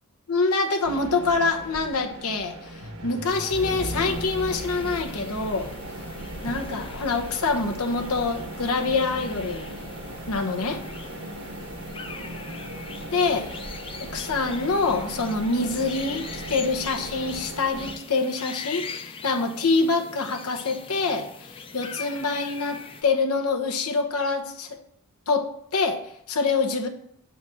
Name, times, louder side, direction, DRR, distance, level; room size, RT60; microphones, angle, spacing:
voice 1, 0.3-5.7 6.4-9.8 10.3-10.8 13.1-13.5 14.0-24.8 25.3-26.9, left 3 dB, 80° left, 4 dB, 1.0 m, -26 dB
sound 1, 0.8-18.0, right 1 dB, 80° right, 1.3 m, -37 dB
sound 2, 3.2-23.0, left 4 dB, 25° left, 0.5 m, -42 dB
7.3 x 4.1 x 6.2 m, 0.71 s
head